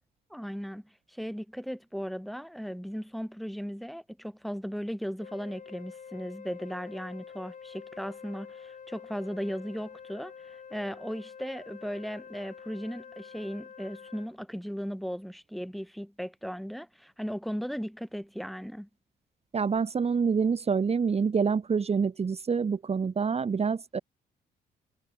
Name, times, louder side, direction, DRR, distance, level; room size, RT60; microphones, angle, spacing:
voice 1, 0.3-18.9, equal, ahead, 4.8 m, -37 dB
Wind instrument woodwind instrument, 5.2-14.3, left 6 dB, 45° left, 6.7 m, -47 dB
voice 2, 19.5-24.0, right 5 dB, 35° right, 2.0 m, -27 dB
cardioid pair, 90°, 18 cm